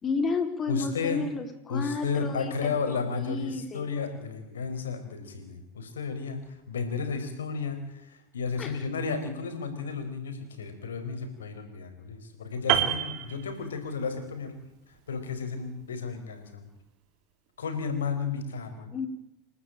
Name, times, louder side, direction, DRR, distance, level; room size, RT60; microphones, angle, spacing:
voice 1, 0.0-3.9 8.6-8.8 18.9-19.1, left 4 dB, 25° left, 6 dB, 4.2 m, -32 dB
voice 2, 0.7-1.3 1.7-14.5 14.9-16.7 17.6-18.9, left 5 dB, 75° left, 6 dB, 4.8 m, -33 dB
Piano, 12.7-14.1 14.4-14.7, right 11 dB, 50° right, 2.6 m, -28 dB
28.5 x 12.5 x 9.0 m, 0.86 s
figure-of-eight pair, 85°, 0 cm